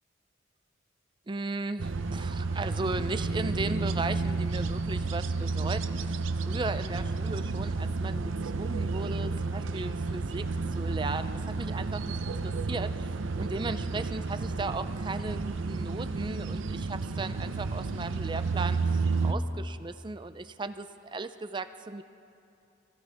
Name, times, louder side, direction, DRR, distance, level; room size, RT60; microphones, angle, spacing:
voice 1, 1.3-10.4 10.7-22.0, right 3 dB, 25° right, 11 dB, 0.4 m, -36 dB
sound 1, 1.8-19.3, right 3 dB, 85° right, 0.6 m, -31 dB
24.0 x 15.5 x 3.5 m, 2.6 s
head